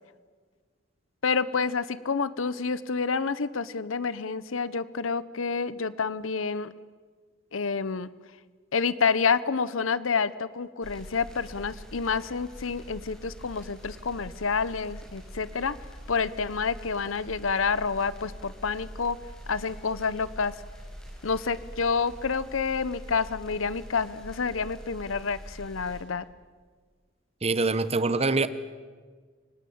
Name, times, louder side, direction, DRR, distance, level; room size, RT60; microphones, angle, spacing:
voice 1, 1.2-6.7 7.5-8.1 8.7-15.8 16.1-19.2 19.5-20.5 21.2-26.3, left 5 dB, 85° left, 17 dB, 0.8 m, -28 dB
sound 1, 10.8-26.0, equal, 5° left, 6.2 m, -44 dB
voice 2, 27.4-28.5, right 3 dB, 30° right, 14 dB, 0.9 m, -24 dB
29.5 x 18.5 x 8.6 m, 1.5 s
head